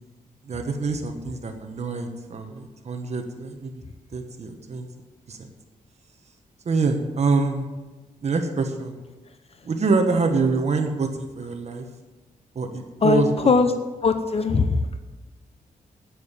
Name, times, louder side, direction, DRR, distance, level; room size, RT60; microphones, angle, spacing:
voice 1, 0.4-3.8 4.1-4.9 5.3-5.5 6.6-7.6 8.2-9.0 9.6-11.8 12.5-13.8, right 4 dB, 50° right, 5 dB, 1.4 m, -25 dB
voice 2, 13.0-13.7 14.0-14.8, left 4 dB, 45° left, 8 dB, 0.8 m, -20 dB
9.5 x 9.2 x 8.3 m, 1.2 s
wide cardioid pair, 155°, 15 cm